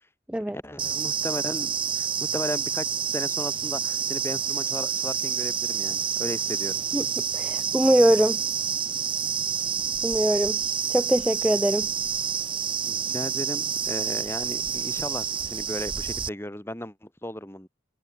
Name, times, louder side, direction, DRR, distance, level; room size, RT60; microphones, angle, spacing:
voice 1, 0.5-2.1 2.3-2.9 3.1-6.8 12.8-17.7, left 1 dB, 15° left, 3.4 m, -35 dB
sound 1, 0.8-16.3, right 7 dB, 25° right, 2.6 m, -28 dB
voice 2, 7.3-8.4 10.0-10.6 10.9-11.9, right 1 dB, 5° right, 0.3 m, -22 dB
head